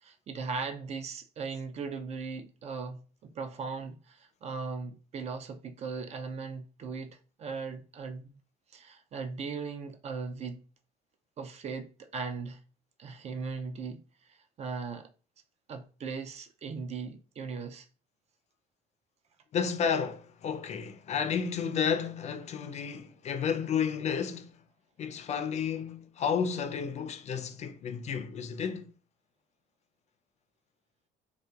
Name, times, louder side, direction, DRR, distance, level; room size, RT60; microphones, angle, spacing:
voice 1, 0.0-8.4 8.7-10.6 11.4-12.6 13.0-14.0 14.3-15.1 15.7-17.9, right 5 dB, 40° right, 0.3 m, -38 dB
voice 2, 19.5-24.5 25.0-28.9, left 7 dB, 40° left, 0.4 m, -32 dB
2.6 x 2.2 x 2.3 m
cardioid pair, 110°, 17 cm